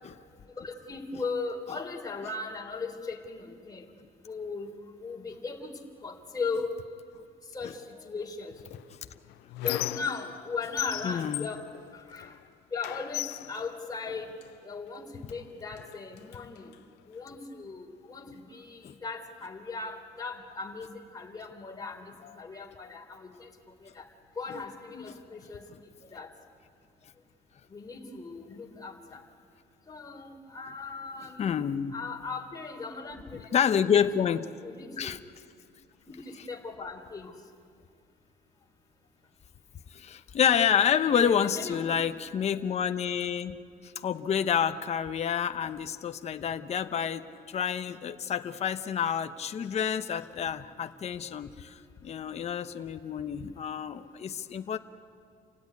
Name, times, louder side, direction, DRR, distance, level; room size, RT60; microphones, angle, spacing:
voice 1, 0.6-3.9 4.3-4.7 5.0-5.7 6.0-6.7 7.5-8.6 9.6-11.6 11.9-12.3 12.7-14.3 14.6-16.7 17.1-23.5 23.8-24.0 24.4-25.6 26.1-26.3 27.7-29.2 29.9-31.5 31.9-33.2 33.8-34.0 34.6-35.2 36.3-37.3 40.9-41.9, left 4 dB, 20° left, 2 dB, 3.5 m, -38 dB
Squeak, 8.7-10.5 10.8-12.4 12.8-14.5 15.3-15.4 15.8-16.8, left 17 dB, 85° left, 0.5 m, -37 dB
voice 2, 11.0-11.5 18.8-19.0 22.2-22.3 24.5-24.6 24.9-25.1 31.4-31.9 33.3-34.4 35.0-35.2 39.9-43.6 43.8-54.8, left 8 dB, 40° left, 9 dB, 0.9 m, -29 dB
28.5 x 16.5 x 9.8 m, 2.3 s
cardioid pair, 110°, 17 cm